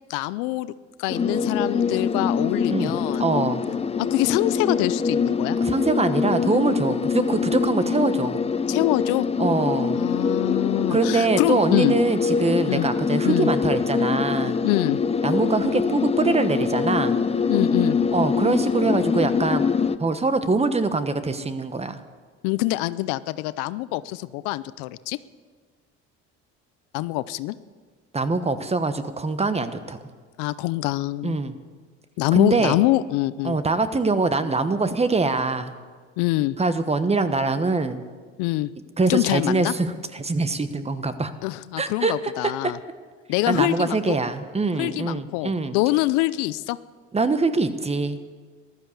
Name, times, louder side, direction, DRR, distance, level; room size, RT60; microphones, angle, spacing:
voice 1, 0.1-0.7 1.0-3.2 4.0-5.6 8.7-9.3 9.9-12.0 12.7-12.9 13.2-13.5 14.6-15.0 17.5-18.0 22.4-25.2 26.9-27.6 30.4-31.4 32.2-33.6 36.2-36.6 38.4-38.7 39.1-39.7 41.4-42.8 43.3-44.2 44.8-46.8, left 18 dB, 90° left, 17 dB, 0.5 m, -24 dB
sound 1, 1.1-20.0, left 5 dB, 20° left, 0.6 m, -24 dB
voice 2, 3.2-3.6 5.6-8.4 9.4-10.0 10.9-14.6 15.2-17.2 18.1-19.6 20.0-22.0 28.1-30.0 31.2-31.5 32.3-32.8 33.4-35.7 36.6-38.0 39.0-41.3 41.8-42.1 42.4-42.7 43.5-45.8 47.1-48.2, right 3 dB, 20° right, 11 dB, 1.2 m, -23 dB
14.5 x 12.5 x 7.1 m, 1.5 s
supercardioid pair, 85°, 30 cm